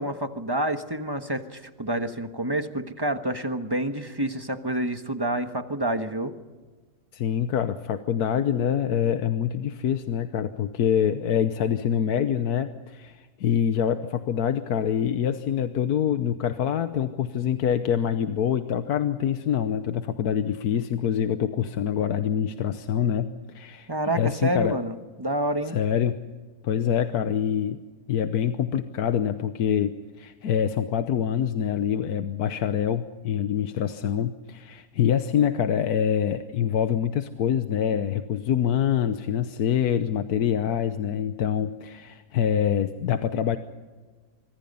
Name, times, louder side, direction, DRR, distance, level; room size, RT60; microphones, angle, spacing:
voice 1, 0.0-6.3 23.9-25.8, right 1 dB, 15° right, 7 dB, 1.2 m, -28 dB
voice 2, 7.1-24.8 25.7-26.2 26.6-27.8 28.1-43.6, left 9 dB, 85° left, 9 dB, 1.4 m, -25 dB
25.5 x 24.0 x 5.5 m, 1.3 s
omnidirectional pair, 1.6 m